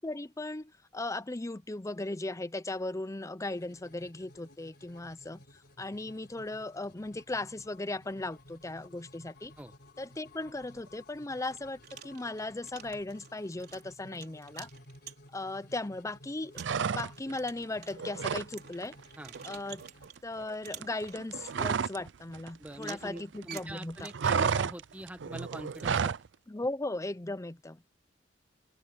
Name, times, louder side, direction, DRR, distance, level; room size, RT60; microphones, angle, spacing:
voice 1, 0.0-5.4 5.8-9.5 10.0-14.7 15.3-19.0 19.4-19.8 20.2-24.1 26.5-27.8, left 2 dB, 15° left, 0.6 m, -37 dB
sound 1, 3.4-20.1, left 1 dB, 60° left, 3.9 m, -56 dB
sound 2, 10.8-10.9 11.4-15.6 16.0-16.1 16.5-20.2 20.6-21.6 22.7-24.6 25.7-25.9, right 9 dB, 60° right, 4.3 m, -50 dB
sound 3, 16.6-17.4 17.7-18.5 18.8-19.0 19.3-22.1 22.3-23.4 23.7-26.3, right 6 dB, 75° right, 0.5 m, -31 dB
voice 2, 22.6-26.1, right 1 dB, 10° right, 1.6 m, -43 dB
head